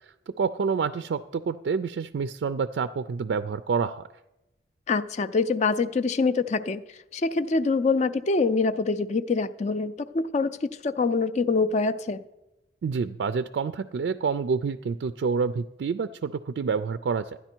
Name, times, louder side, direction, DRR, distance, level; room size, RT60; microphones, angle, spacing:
voice 1, 0.3-4.1 12.8-17.4, right 5 dB, 70° right, 11 dB, 0.3 m, -28 dB
voice 2, 4.9-6.8 7.1-12.2, left 4 dB, 40° left, 14 dB, 0.4 m, -25 dB
12.5 x 9.9 x 4.5 m, 0.96 s
head